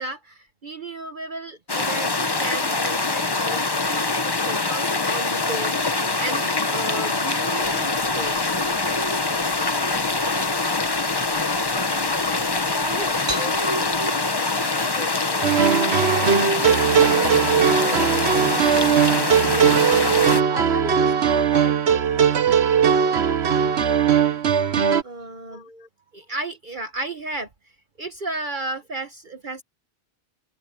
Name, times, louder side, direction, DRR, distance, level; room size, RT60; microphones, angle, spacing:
voice 1, 0.0-8.4 25.0-25.7 26.1-27.5 28.0-29.6, right 2 dB, 45° right, 1.2 m, -34 dB
sound 1, 1.7-20.4, left 3 dB, 20° left, 0.9 m, -24 dB
sound 2, 7.6-14.1, right 1 dB, 20° right, 4.8 m, -36 dB
voice 2, 12.7-15.5 16.1-20.0 20.5-22.3 24.1-24.2 24.4-24.6 25.2-25.9, left 1 dB, 40° left, 6.5 m, -37 dB
sound 3, 15.4-25.0, right 7 dB, 65° right, 1.3 m, -19 dB
omnidirectional pair, 1.2 m